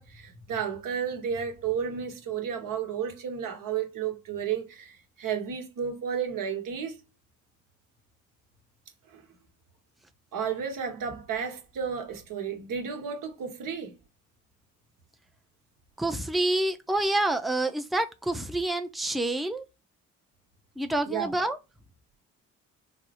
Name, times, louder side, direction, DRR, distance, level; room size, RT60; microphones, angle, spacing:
voice 1, 0.0-7.0 9.1-9.2 10.3-13.9 21.1-21.3, right 7 dB, 65° right, 1.1 m, -32 dB
voice 2, 16.0-19.6 20.8-21.6, right 1 dB, ahead, 0.5 m, -27 dB
3.4 x 2.0 x 2.8 m
hypercardioid pair, 45°, 35 cm